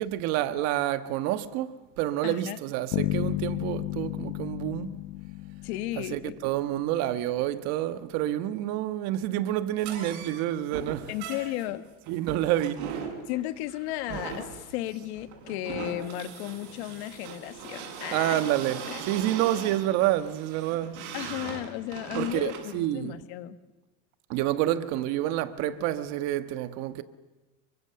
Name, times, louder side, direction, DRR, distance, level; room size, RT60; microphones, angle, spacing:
voice 1, 0.0-4.9 6.0-11.1 12.1-13.1 18.1-18.8 19.1-21.0 22.2-23.2 24.3-27.0, right 13 dB, 55° right, 1.4 m, -28 dB
voice 2, 2.2-2.6 5.6-6.3 11.1-11.8 13.3-18.5 18.9-19.0 21.1-23.6, left 14 dB, 80° left, 1.8 m, -34 dB
Bass guitar, 2.9-6.7, left 19 dB, 60° left, 0.8 m, -32 dB
sound 1, 9.8-22.7, right 6 dB, 85° right, 7.8 m, -40 dB
29.0 x 24.0 x 7.0 m
cardioid pair, 175°, 32 cm